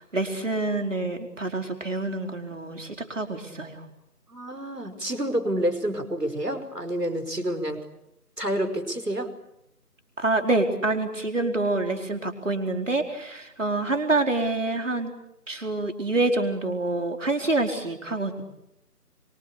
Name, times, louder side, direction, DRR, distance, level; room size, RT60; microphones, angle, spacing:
voice 1, 0.0-3.8 10.2-15.1 15.5-18.4, right 2 dB, 50° right, 4 dB, 4.6 m, -27 dB
voice 2, 4.3-7.9 8.4-9.3, right 1 dB, 90° right, 9 dB, 5.3 m, -28 dB
25.0 x 25.0 x 8.4 m, 0.83 s
figure-of-eight pair, 165°, 46 cm